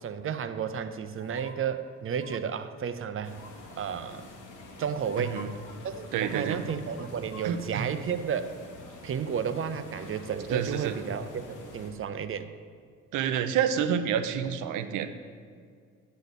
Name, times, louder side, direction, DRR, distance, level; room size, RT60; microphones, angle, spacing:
voice 1, 0.0-3.4 3.8-4.3 4.8-5.4 5.8-8.5 9.0-12.5, right 7 dB, 45° right, 10 dB, 0.6 m, -32 dB
sound 1, 1.2-1.5 2.1-2.4 3.3-3.7 4.6-4.7 5.0-5.5 6.2-7.5 7.8-7.9, left 4 dB, 50° left, 0.8 m, -48 dB
sound 2, 3.2-11.9, left 2 dB, 85° left, 1.2 m, -47 dB
voice 2, 5.2-5.5 6.1-6.6 7.4-7.9 10.5-11.0 13.1-15.1, right 8 dB, 85° right, 9 dB, 0.6 m, -28 dB
9.4 x 4.1 x 6.8 m, 2.1 s
cardioid pair, 90°, 30 cm